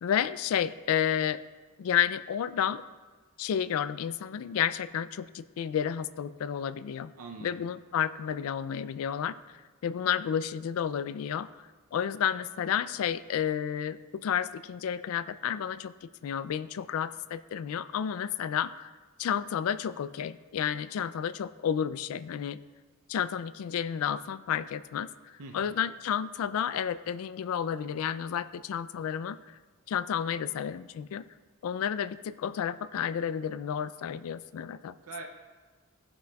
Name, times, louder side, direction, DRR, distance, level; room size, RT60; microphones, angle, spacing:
voice 1, 0.0-1.4 1.8-2.8 3.4-7.1 7.4-9.4 9.8-11.5 11.9-18.9 19.2-22.6 23.1-25.1 25.5-29.4 29.9-31.2 31.6-34.9, left 8 dB, 65° left, 16 dB, 0.3 m, -31 dB
voice 2, 7.1-7.6 25.4-25.8 35.0-35.2, right 4 dB, 70° right, 2 dB, 0.6 m, -43 dB
16.5 x 5.9 x 2.3 m, 1.4 s
head